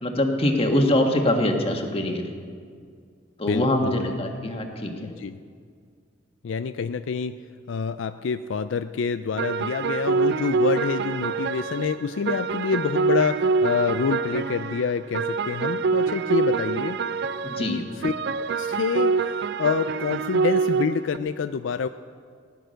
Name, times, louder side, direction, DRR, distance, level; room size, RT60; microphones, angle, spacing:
voice 1, 0.0-2.3 3.4-4.9 17.4-17.8, left 1 dB, 30° left, 3 dB, 1.5 m, -23 dB
voice 2, 3.5-4.2 5.0-5.4 6.4-7.4 7.7-17.0 17.6-18.1 18.6-21.9, left 5 dB, 75° left, 11 dB, 0.4 m, -27 dB
sound 1, 9.4-21.2, right 4 dB, 60° right, 0.4 m, -25 dB
17.0 x 10.0 x 6.4 m, 2.1 s
head